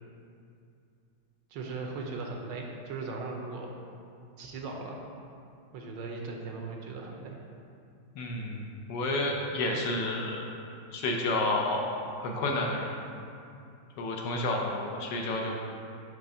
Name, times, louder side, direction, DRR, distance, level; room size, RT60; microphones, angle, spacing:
voice 1, 1.5-3.7 4.4-5.0 5.7-7.4, right 3 dB, 70° right, 1 dB, 1.2 m, -38 dB
voice 2, 8.1-10.4 10.9-11.9 12.2-12.9 14.0-15.6, left 2 dB, 70° left, 0 dB, 1.2 m, -30 dB
7.0 x 3.3 x 5.3 m, 2.5 s
omnidirectional pair, 2.2 m